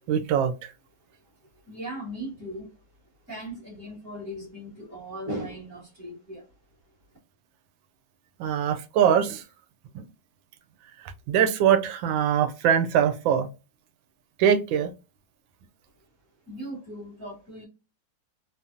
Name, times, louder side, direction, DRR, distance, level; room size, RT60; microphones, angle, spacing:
voice 1, 0.1-0.7 8.4-9.4 9.9-10.0 11.0-13.5 14.4-14.9, right 8 dB, 90° right, 1.3 m, -23 dB
voice 2, 1.7-2.7 3.3-6.4 16.5-17.7, right 1 dB, 45° right, 1.8 m, -37 dB
3.9 x 2.0 x 2.4 m
omnidirectional pair, 2.0 m